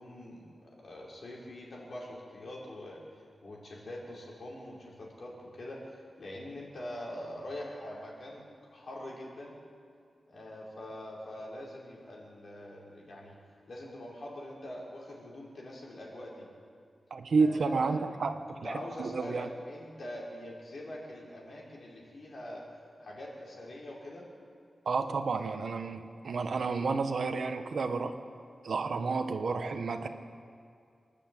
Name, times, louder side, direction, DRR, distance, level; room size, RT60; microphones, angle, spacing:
voice 1, 0.0-3.0 3.4-8.4 8.7-9.5 10.3-13.4 13.7-16.5 17.4-18.2 18.6-22.6 23.0-24.3, left 1 dB, 60° left, -4 dB, 5.6 m, -44 dB
voice 2, 17.1-19.5 24.8-28.2 28.6-30.1, right 4 dB, 65° right, 6 dB, 1.3 m, -31 dB
28.0 x 11.0 x 9.1 m, 2.3 s
wide cardioid pair, 155°, 0 cm